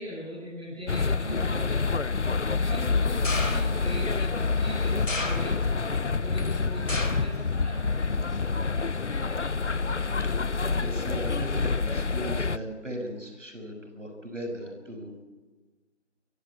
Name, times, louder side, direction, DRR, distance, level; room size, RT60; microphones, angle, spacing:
voice 1, 0.0-2.0 2.6-8.3, equal, 5° right, -14 dB, 2.7 m, -40 dB
sound 1, 0.9-12.6, left 4 dB, 65° left, 0.8 m, -27 dB
sound 2, 3.2-3.9 5.1-5.8 6.9-7.4 7.8-8.3 9.1-9.2, left 2 dB, 90° left, 3.8 m, -33 dB
voice 2, 8.7-9.1 10.2-10.3 10.8-15.2, equal, 75° right, 4 dB, 6.4 m, -37 dB
25.0 x 15.0 x 8.6 m, 1.3 s
figure-of-eight pair, 180°, 38 cm